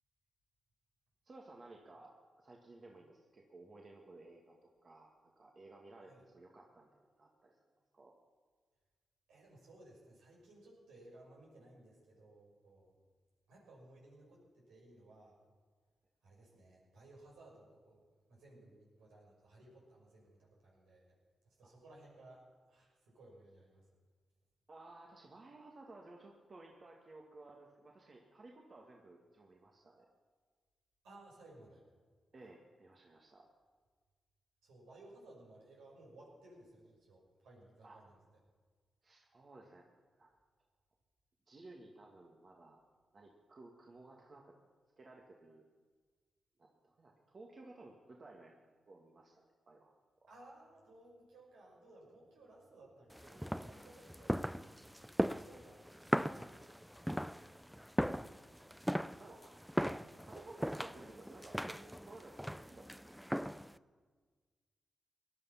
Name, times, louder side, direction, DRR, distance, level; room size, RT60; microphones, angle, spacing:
voice 1, 1.2-7.6 7.9-8.1 24.7-30.1 32.3-33.5 37.8-38.0 39.0-39.9 40.2-40.3 41.5-42.8 43.1-44.6 45.0-45.6 46.6-48.6 48.9-50.3 58.3-58.4 58.9-59.5 59.8-62.8, right 2 dB, 50° right, 0 dB, 2.0 m, -56 dB
voice 2, 9.3-12.9 13.5-15.4 16.2-18.0 18.3-21.2 21.4-23.9 31.0-31.9 34.6-38.2 50.3-55.8 58.9-59.2, right 2 dB, 80° right, -4 dB, 5.8 m, -59 dB
sound 1, 53.1-63.8, equal, ahead, 0.5 m, -39 dB
18.5 x 11.0 x 5.8 m, 1.5 s
hypercardioid pair, 40°, 0 cm